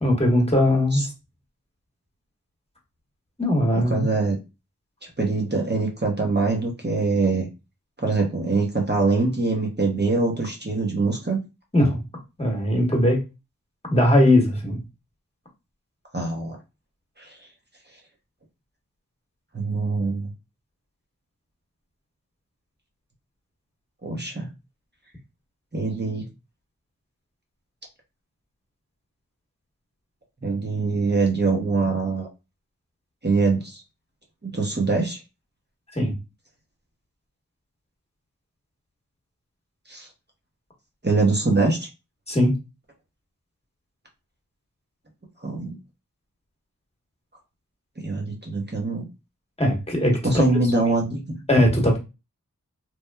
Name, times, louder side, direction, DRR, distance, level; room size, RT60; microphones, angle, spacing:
voice 1, 0.0-1.1 3.4-4.1 11.7-12.0 12.4-13.2 13.9-14.8 35.9-36.1 42.3-42.5 49.6-50.2 51.5-52.0, left 1 dB, 20° left, 0 dB, 1.1 m, -19 dB
voice 2, 3.9-4.4 5.2-7.5 8.0-11.4 16.1-16.6 17.2-17.5 19.5-20.3 24.0-24.5 25.7-26.3 30.4-32.3 33.2-33.8 34.4-35.2 39.9-40.1 41.0-41.9 45.4-45.8 48.0-49.0 50.2-51.4, right 3 dB, 30° right, 1 dB, 0.8 m, -23 dB
3.0 x 2.2 x 2.2 m, 0.27 s
wide cardioid pair, 40°, 33 cm